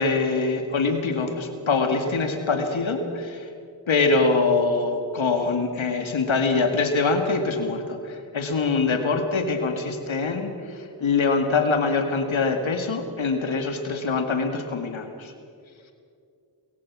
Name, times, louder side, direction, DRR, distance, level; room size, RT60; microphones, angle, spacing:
voice 1, 0.0-3.5 3.9-15.3, left 4 dB, 80° left, 5 dB, 2.3 m, -24 dB
22.5 x 22.5 x 6.2 m, 2.4 s
cardioid pair, 45°, 46 cm